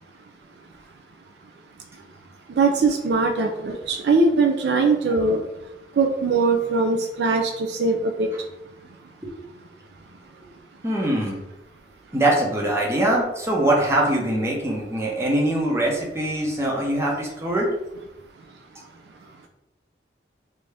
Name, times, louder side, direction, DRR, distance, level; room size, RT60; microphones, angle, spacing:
voice 1, 2.6-5.4 6.0-8.3, right 3 dB, 65° right, 4 dB, 0.4 m, -21 dB
voice 2, 10.8-11.4 12.1-17.7, right 1 dB, 15° right, -3 dB, 0.7 m, -22 dB
3.3 x 2.7 x 3.3 m, 0.92 s
head